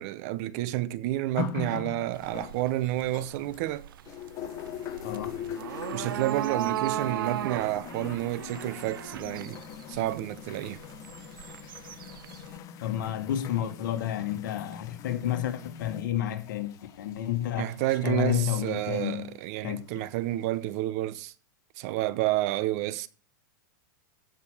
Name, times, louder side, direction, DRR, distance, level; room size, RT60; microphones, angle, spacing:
voice 1, 0.0-3.9 5.9-9.6 9.9-10.8 17.6-21.3 21.8-23.1, right 15 dB, 45° right, 0.7 m, -30 dB
sound 1, 1.4-3.7 4.1-18.8 19.7-19.8, left 8 dB, 30° left, 1.0 m, -41 dB
sound 2, 2.1-12.6, right 12 dB, 85° right, 0.5 m, -37 dB
voice 2, 5.0-5.4 12.8-17.7 18.0-19.3 19.6-19.8, left 11 dB, 65° left, 1.8 m, -30 dB
15.0 x 5.2 x 6.6 m
supercardioid pair, 150°, 11 cm